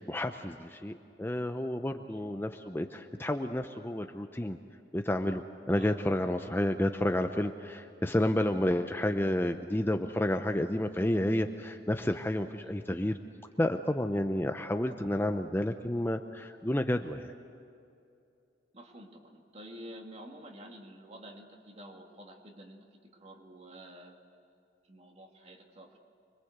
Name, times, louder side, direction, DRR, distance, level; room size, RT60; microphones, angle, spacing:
voice 1, 0.0-4.6 4.9-5.4 5.7-13.2 13.6-17.3, left 1 dB, 10° left, 6 dB, 0.7 m, -30 dB
voice 2, 18.7-24.2 24.8-26.0, right 1 dB, 35° right, 3 dB, 2.2 m, -50 dB
25.5 x 22.0 x 8.1 m, 2.6 s
head